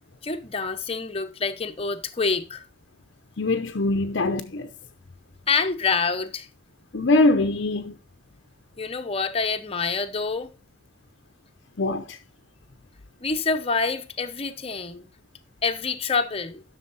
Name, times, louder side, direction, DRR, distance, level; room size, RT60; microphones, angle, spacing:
voice 1, 0.2-2.7 5.5-6.5 8.8-10.5 13.2-15.1 15.6-16.6, left 4 dB, 30° left, 0.9 m, -27 dB
voice 2, 3.4-4.7 6.9-8.0 11.8-12.2, left 2 dB, 60° left, 0.7 m, -22 dB
11.5 x 6.4 x 4.1 m
head